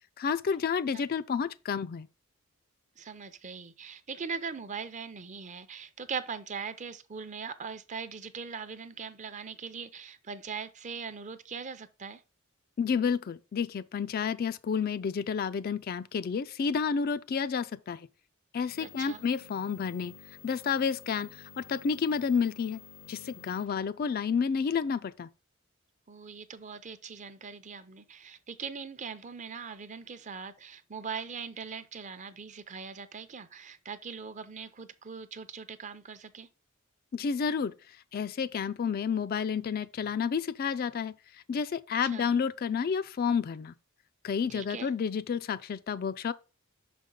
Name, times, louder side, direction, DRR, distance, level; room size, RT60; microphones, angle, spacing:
voice 1, 0.2-2.1 12.8-18.1 18.5-20.1 20.4-22.8 23.1-25.3 37.1-37.7 38.1-43.7 44.2-46.3, left 6 dB, 45° left, 0.3 m, -30 dB
voice 2, 3.0-12.2 18.8-19.2 26.1-36.5 42.0-42.3 44.5-44.9, right 5 dB, 35° right, 0.6 m, -41 dB
sound 1, 18.7-23.7, left 7 dB, 70° left, 0.7 m, -51 dB
6.4 x 5.2 x 3.7 m
head